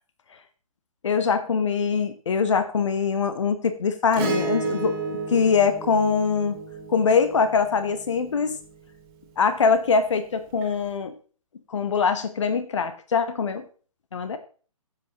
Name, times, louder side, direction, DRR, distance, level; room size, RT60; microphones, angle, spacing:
voice 1, 1.0-6.6 6.9-8.6 9.4-11.1 11.7-13.6 14.1-14.4, left 5 dB, 55° left, 10 dB, 1.1 m, -23 dB
Acoustic guitar / Strum, 4.1-8.7 10.6-10.7, right 3 dB, 25° right, 2.8 m, -31 dB
15.5 x 7.8 x 3.0 m, 0.39 s
figure-of-eight pair, 135°, 18 cm